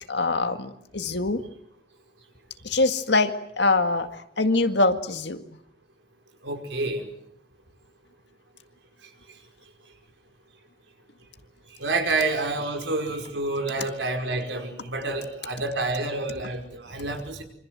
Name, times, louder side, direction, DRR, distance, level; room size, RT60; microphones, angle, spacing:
voice 1, 0.1-1.4 2.6-4.1 4.4-5.4, left 3 dB, 65° left, 8 dB, 2.0 m, -23 dB
voice 2, 6.4-7.1 11.8-17.4, right 2 dB, 75° right, 5 dB, 5.1 m, -28 dB
27.0 x 25.5 x 7.7 m, 0.75 s
head